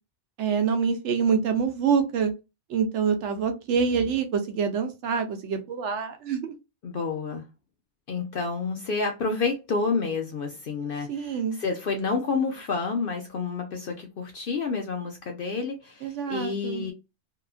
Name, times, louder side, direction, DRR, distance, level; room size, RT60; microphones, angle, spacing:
voice 1, 0.4-2.3 2.7-6.5 11.1-11.6 16.0-16.9, right 6 dB, 80° right, 0.9 m, -26 dB
voice 2, 6.8-7.4 8.1-16.9, left 4 dB, 60° left, 0.7 m, -29 dB
2.8 x 2.4 x 2.3 m
omnidirectional pair, 1.2 m